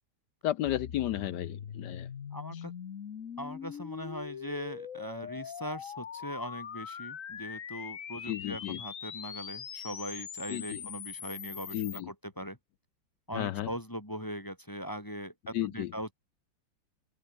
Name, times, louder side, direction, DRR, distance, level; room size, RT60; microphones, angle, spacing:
voice 1, 0.4-2.1 8.2-8.8 10.5-10.8 11.7-12.1 13.3-13.7 15.5-15.9, left 13 dB, 70° left, 1.1 m, -33 dB
sound 1, 0.6-12.0, left 8 dB, 45° left, 1.3 m, -42 dB
voice 2, 2.3-2.7 3.4-12.6 13.3-16.1, equal, 10° left, 6.8 m, -40 dB
open air
omnidirectional pair, 2.2 m